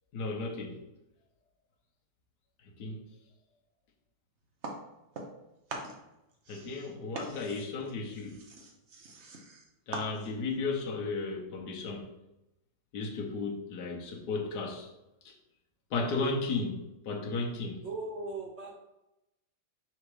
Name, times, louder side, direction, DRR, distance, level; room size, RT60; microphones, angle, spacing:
voice 1, 0.1-0.8 2.6-3.0 6.5-8.4 9.9-12.1 12.9-14.9 15.2-15.3 15.9-17.8, left 3 dB, 65° left, 0 dB, 1.5 m, -34 dB
sound 1, 4.6-5.4 5.7-10.5, right 2 dB, 50° right, 0.9 m, -43 dB
voice 2, 17.8-18.7, right 3 dB, 70° right, -1 dB, 0.6 m, -38 dB
5.0 x 4.2 x 4.8 m, 0.93 s
omnidirectional pair, 2.0 m